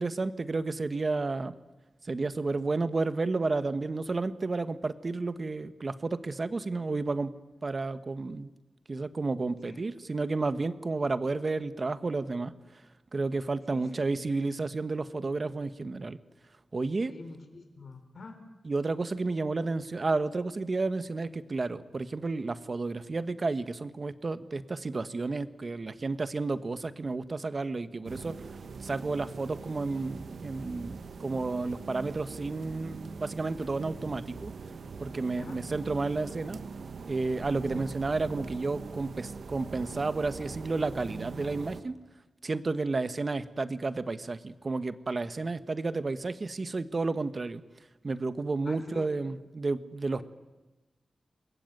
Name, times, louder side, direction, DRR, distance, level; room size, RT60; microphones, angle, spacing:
voice 1, 0.0-1.5 2.1-7.3 7.6-8.5 8.9-12.5 13.1-16.2 16.7-17.1 18.6-28.4 28.8-34.5 35.0-36.6 37.1-42.0 42.4-47.6 48.0-50.2, right 3 dB, 40° right, 12 dB, 1.4 m, -31 dB
voice 2, 13.7-14.1 17.1-18.4 35.4-35.6 37.7-37.8 48.6-49.1, left 3 dB, 60° left, 7 dB, 4.0 m, -46 dB
sound 1, 28.0-41.8, right 5 dB, 85° right, 1.6 m, -42 dB
28.0 x 21.5 x 9.2 m, 1.1 s
wide cardioid pair, 100°, 0 cm